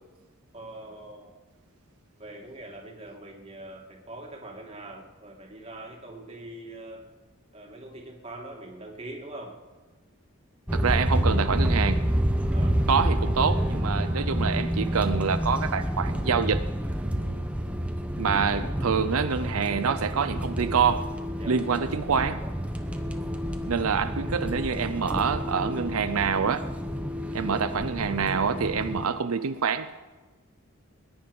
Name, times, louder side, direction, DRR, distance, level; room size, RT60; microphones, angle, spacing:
voice 1, 0.5-1.3 2.2-7.0 7.5-9.6 12.5-12.8 21.4-21.6 22.8-23.1, right 1 dB, 30° right, 2.4 m, -43 dB
sound 1, 10.7-29.0, equal, 5° right, 0.9 m, -28 dB
voice 2, 10.7-12.1 12.9-16.6 18.2-21.1 21.5-22.4 23.7-26.7 27.3-30.0, right 6 dB, 90° right, 0.6 m, -26 dB
20.0 x 10.0 x 5.4 m
head